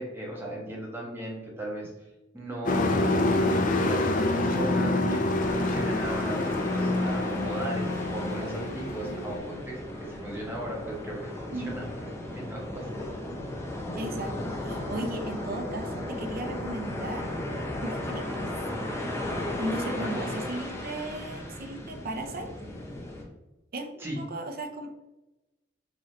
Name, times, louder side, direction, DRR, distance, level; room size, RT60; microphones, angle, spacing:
voice 1, 0.0-1.9 2.3-3.3 3.8-12.9 20.0-20.4 24.0-24.2, right 1 dB, 10° right, -3 dB, 1.3 m, -37 dB
Truck, 2.6-9.4, left 2 dB, 45° left, 0.6 m, -26 dB
sound 1, 5.4-23.2, left 1 dB, 15° left, 0.8 m, -35 dB
voice 2, 13.9-17.3 17.8-18.5 19.6-22.5 23.7-25.0, right 1 dB, 50° right, 5 dB, 0.6 m, -36 dB
6.1 x 3.0 x 2.9 m, 1.0 s
head